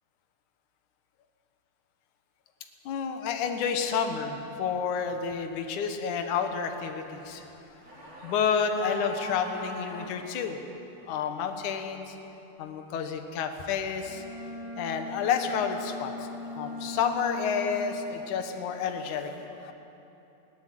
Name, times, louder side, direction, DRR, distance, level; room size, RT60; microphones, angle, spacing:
voice 1, 2.9-7.5 8.2-10.6 11.1-12.1 12.6-14.3 14.8-19.7, left 6 dB, 70° left, 6 dB, 1.9 m, -30 dB
sound 1, 7.5-10.1 10.4-10.5, right 2 dB, 45° right, 6.7 m, -41 dB
Bowed string instrument, 14.0-18.1, left 2 dB, 15° left, 2.4 m, -39 dB
20.0 x 17.0 x 7.7 m, 3.0 s
omnidirectional pair, 5.2 m